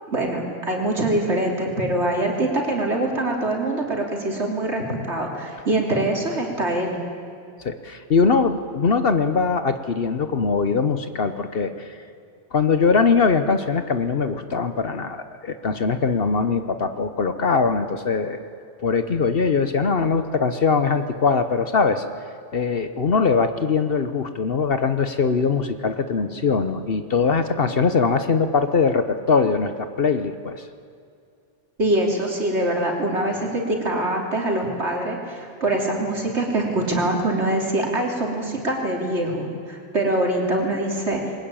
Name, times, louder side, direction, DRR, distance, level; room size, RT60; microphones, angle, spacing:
voice 1, 0.1-7.0 31.8-41.2, right 1 dB, 70° right, 0 dB, 3.5 m, -24 dB
voice 2, 7.6-12.0 12.5-18.4 18.8-22.0 22.5-30.7, left 5 dB, 55° left, 9 dB, 1.1 m, -21 dB
21.5 x 20.0 x 9.0 m, 2.3 s
omnidirectional pair, 1.2 m